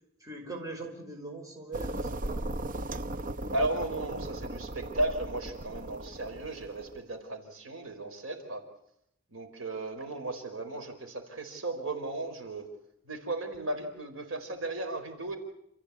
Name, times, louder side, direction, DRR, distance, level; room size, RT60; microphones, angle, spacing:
voice 1, 0.2-2.4, right 2 dB, 15° right, 1 dB, 5.2 m, -41 dB
sound 1, 1.7-7.0, right 1 dB, 40° right, 0.8 m, -37 dB
voice 2, 3.5-8.6 9.3-12.7 13.0-15.4, right 2 dB, 75° right, 5 dB, 4.6 m, -35 dB
28.0 x 15.0 x 8.4 m, 0.78 s
head